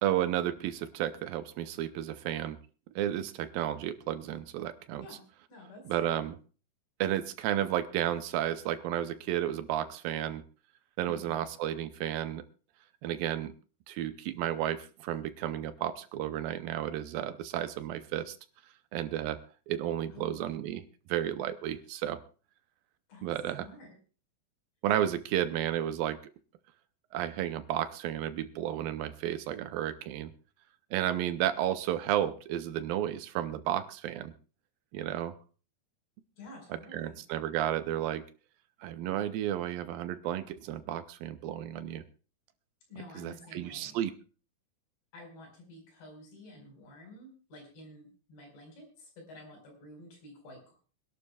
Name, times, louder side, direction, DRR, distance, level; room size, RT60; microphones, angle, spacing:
voice 1, 0.0-2.6 3.0-5.1 5.9-6.4 7.0-10.4 11.0-12.4 13.0-13.5 13.9-18.4 18.9-19.4 19.7-20.8 21.1-22.2 23.2-23.7 24.8-26.2 27.1-30.3 30.9-34.3 34.9-35.3 36.9-38.2 38.8-42.0 43.2-44.1, right 11 dB, 75° right, 11 dB, 2.3 m, -32 dB
voice 2, 5.0-6.3 11.1-11.5 20.1-20.5 23.1-23.3 23.6-24.0 36.4-37.2 42.9-44.0 45.1-50.7, left 1 dB, 75° left, 1 dB, 6.9 m, -50 dB
25.0 x 11.5 x 2.3 m, 0.37 s
omnidirectional pair, 4.5 m